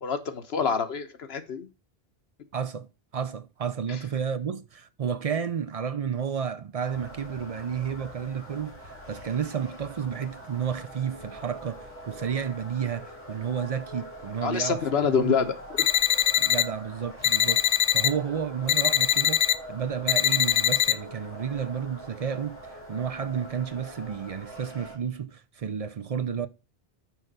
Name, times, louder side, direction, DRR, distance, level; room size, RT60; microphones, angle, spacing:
voice 1, 0.0-1.7 3.9-4.0 14.4-15.5, left 6 dB, 80° left, 1.2 m, -26 dB
voice 2, 2.5-2.9 3.1-14.8 15.2-15.4 16.4-26.5, right 7 dB, 50° right, 0.5 m, -31 dB
sound 1, 6.8-25.0, right 1 dB, 10° left, 3.0 m, -44 dB
sound 2, 15.8-16.6 17.2-18.1 18.7-19.5 20.1-20.9, left 11 dB, 55° left, 0.5 m, -22 dB
6.3 x 4.9 x 6.5 m
omnidirectional pair, 1.0 m